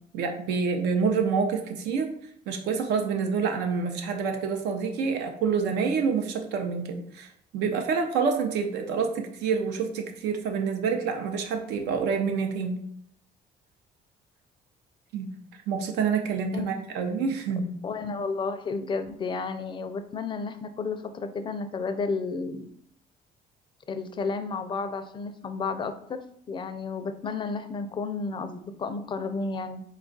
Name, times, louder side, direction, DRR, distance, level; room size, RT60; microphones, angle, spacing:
voice 1, 0.1-2.1 2.5-12.8 15.1-15.3 15.7-17.6, right 5 dB, 90° right, 5 dB, 0.7 m, -27 dB
voice 2, 17.8-22.7 23.9-29.8, left 4 dB, 30° left, 9 dB, 0.4 m, -32 dB
4.2 x 2.4 x 3.9 m, 0.68 s
cardioid pair, 110°, 17 cm